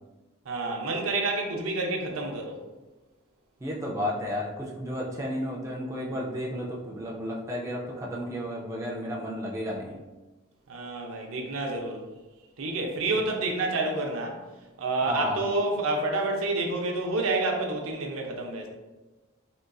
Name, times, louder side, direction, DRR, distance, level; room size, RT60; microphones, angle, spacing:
voice 1, 0.5-2.6 10.7-12.0 12.6-14.4 14.8-18.7, right 2 dB, 85° right, 1 dB, 0.6 m, -28 dB
voice 2, 3.6-10.0 15.1-15.4, equal, 15° right, -3 dB, 0.3 m, -32 dB
3.8 x 2.4 x 2.2 m, 1.1 s
head